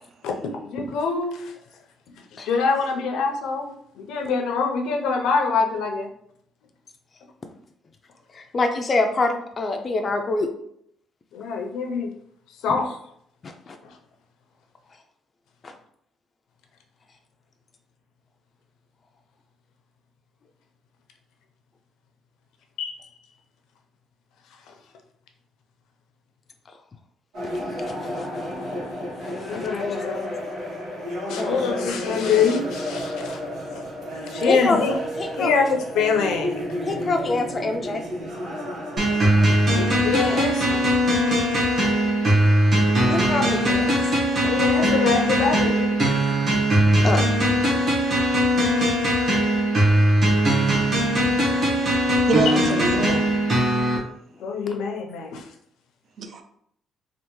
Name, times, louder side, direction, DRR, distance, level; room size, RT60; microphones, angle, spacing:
voice 1, 0.2-1.5 2.4-6.1 11.3-12.1 12.6-13.0 13.8-13.9 22.8-23.0 29.4-30.3 31.3-33.4 34.3-35.0 35.3-36.6 39.7-40.9 44.4-45.9 54.4-55.5, left 5 dB, 90° left, 3 dB, 0.5 m, -25 dB
voice 2, 8.4-10.5 13.4-13.8 15.6-15.7 27.9-28.5 29.2-29.9 31.3-31.8 34.5-34.9 35.2-35.5 36.8-38.0 43.1-43.9 47.0-47.3, left 3 dB, 30° left, 4 dB, 0.3 m, -26 dB
sound 1, 27.3-41.5, equal, 75° right, 1.3 m, -32 dB
sound 2, 39.0-54.0, equal, 40° right, 1.2 m, -20 dB
voice 3, 42.6-43.3 52.3-53.2 56.2-56.4, right 5 dB, 55° right, 6 dB, 0.4 m, -27 dB
3.3 x 2.4 x 3.0 m, 0.71 s
cardioid pair, 130°, 0 cm